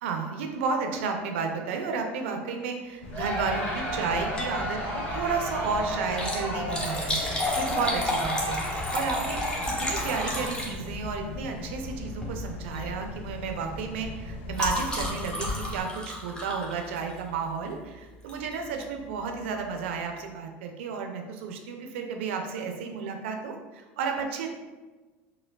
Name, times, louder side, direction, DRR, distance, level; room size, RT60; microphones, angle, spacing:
voice 1, 0.0-8.6 8.9-9.4 9.8-24.5, right 5 dB, 80° right, 4 dB, 0.4 m, -32 dB
sound 1, 3.0-15.8, left 2 dB, 85° left, 0.4 m, -39 dB
Crowd, 3.1-10.8, equal, 40° left, 1.4 m, -33 dB
Liquid, 4.4-4.6 5.0-5.1 6.0-11.1 12.1-12.4 12.7-13.0 13.3-17.3 18.3-18.5 19.1-19.2 19.4-19.5, left 1 dB, 10° left, 0.8 m, -32 dB
4.4 x 2.1 x 2.3 m, 1.3 s
hypercardioid pair, 90°, 6 cm